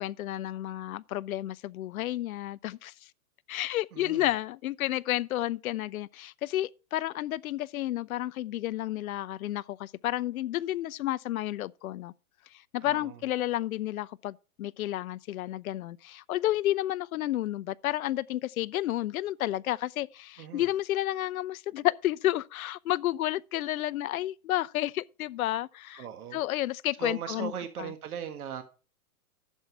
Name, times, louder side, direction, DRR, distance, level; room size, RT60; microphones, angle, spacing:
voice 1, 0.0-2.9 3.5-12.1 12.7-26.0 26.3-27.5 27.8-27.9, left 14 dB, 75° left, 0.6 m, -31 dB
voice 2, 3.9-4.3 12.8-13.2 20.4-20.7 25.9-26.4 27.0-28.6, right 9 dB, 85° right, 1.7 m, -39 dB
12.0 x 7.3 x 4.5 m
hypercardioid pair, 155°, 43 cm